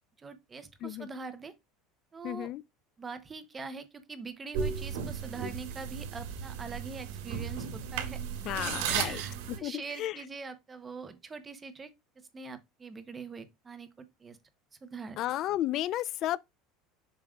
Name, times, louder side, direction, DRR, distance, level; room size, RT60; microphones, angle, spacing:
voice 1, 0.2-1.5 2.1-2.5 3.0-8.2 8.6-14.4 14.8-15.2, right 4 dB, 15° right, 0.7 m, -43 dB
voice 2, 2.2-2.6 8.4-9.2 9.5-10.2 15.2-16.4, left 13 dB, 35° left, 0.4 m, -33 dB
sound 1, 4.5-9.6, right 7 dB, 80° right, 2.1 m, -35 dB
7.2 x 6.4 x 2.3 m
cardioid pair, 175°, 0 cm